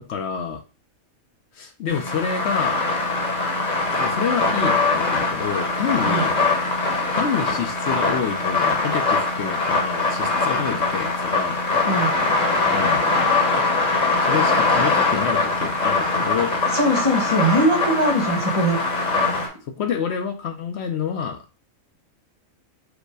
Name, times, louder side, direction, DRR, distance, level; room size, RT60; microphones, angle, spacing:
voice 1, 0.1-0.6 1.5-2.8 4.0-6.4 7.1-11.6 12.7-13.1 14.2-16.5 19.1-21.4, left 7 dB, 65° left, 7 dB, 0.8 m, -28 dB
sound 1, 1.9-19.5, left 3 dB, 35° left, 1.0 m, -22 dB
voice 2, 16.7-18.8, right 1 dB, 25° right, -1 dB, 1.3 m, -20 dB
5.0 x 2.1 x 4.6 m, 0.33 s
omnidirectional pair, 1.4 m